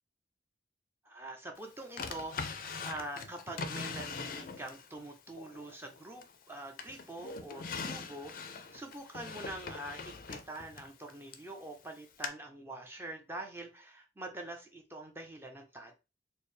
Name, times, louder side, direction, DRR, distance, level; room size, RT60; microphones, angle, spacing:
voice 1, 1.0-15.9, right 1 dB, 15° right, 3 dB, 0.5 m, -45 dB
Drawer open or close, 2.0-4.9 5.4-6.4 6.8-11.5 12.2-12.3, left 4 dB, 50° left, 0.4 m, -41 dB
4.3 x 2.0 x 3.2 m, 0.29 s
head